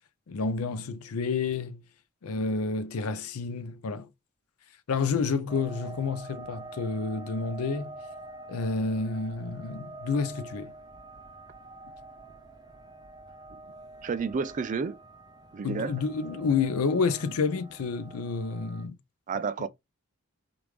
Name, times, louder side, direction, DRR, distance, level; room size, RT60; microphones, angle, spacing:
voice 1, 0.3-1.8 2.2-4.1 4.9-7.9 8.5-10.7 15.6-19.0 19.6-19.7, left 4 dB, 85° left, 0.5 m, -29 dB
sound 1, 5.5-18.9, right 2 dB, 20° right, 1.0 m, -46 dB
voice 2, 14.0-15.0 15.5-15.9 19.3-19.7, right 5 dB, 35° right, 0.3 m, -30 dB
3.0 x 2.5 x 3.3 m
head